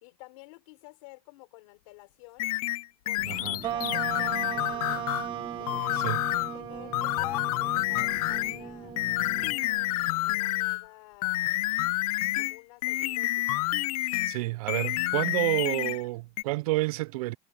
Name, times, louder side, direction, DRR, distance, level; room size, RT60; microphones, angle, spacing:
voice 1, 0.0-2.5 3.0-5.1 5.6-6.1 6.5-9.0 10.2-11.5 12.4-13.8, left 24 dB, 55° left, 4.0 m, -51 dB
sound 1, 2.4-5.3 5.7-6.6 6.9-8.6 9.0-10.9 11.2-14.4 14.7-16.0 16.4-16.5, left 18 dB, 85° left, 0.7 m, -29 dB
sound 2, 3.2-9.6, left 2 dB, 5° left, 1.3 m, -46 dB
voice 2, 3.3-3.6 5.9-6.2 14.3-17.4, right 20 dB, 80° right, 0.4 m, -29 dB
sound 3, 3.6-10.3, right 12 dB, 25° right, 0.9 m, -38 dB
supercardioid pair, 180°, 19 cm